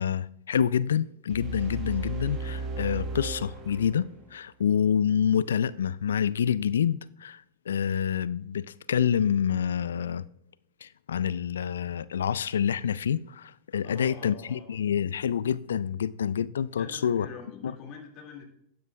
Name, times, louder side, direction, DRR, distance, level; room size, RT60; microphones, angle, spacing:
voice 1, 0.0-10.2 10.8-17.3 17.6-17.7, left 8 dB, 80° left, 0.3 m, -27 dB
sound 1, 1.3-4.3, right 3 dB, 35° right, 1.4 m, -35 dB
voice 2, 13.8-14.7 16.8-18.4, left 6 dB, 45° left, 2.3 m, -45 dB
12.5 x 9.3 x 2.3 m
hypercardioid pair, 100°, 0 cm